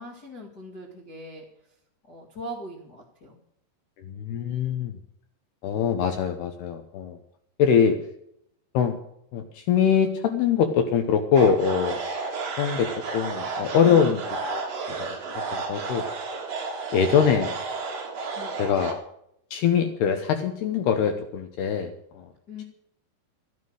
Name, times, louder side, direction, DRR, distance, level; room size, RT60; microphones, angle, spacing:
voice 1, 0.0-1.4 2.1-3.4 18.3-18.6 22.5-22.6, left 1 dB, 50° left, -3 dB, 1.1 m, -40 dB
voice 2, 4.0-5.0 5.6-7.2 7.6-8.0 8.7-9.0 9.3-12.0 12.6-12.9 13.1-14.2 14.5-15.1 15.5-16.0 16.9-17.5 18.6-19.0 19.5-22.3, left 7 dB, 75° left, 6 dB, 2.4 m, -23 dB
sound 1, 11.3-18.9, right 4 dB, 45° right, 2.3 m, -32 dB
15.0 x 9.7 x 6.5 m, 0.74 s
omnidirectional pair, 5.9 m